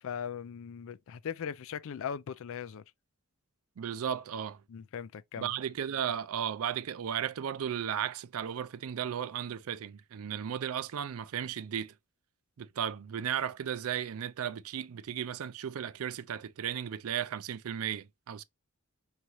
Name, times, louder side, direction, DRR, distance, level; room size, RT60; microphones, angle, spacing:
voice 1, 0.0-2.8 4.7-5.5, left 7 dB, 60° left, 0.4 m, -39 dB
voice 2, 3.8-4.6 5.4-11.9 12.6-18.4, right 9 dB, 70° right, 0.4 m, -35 dB
4.7 x 2.7 x 2.9 m
head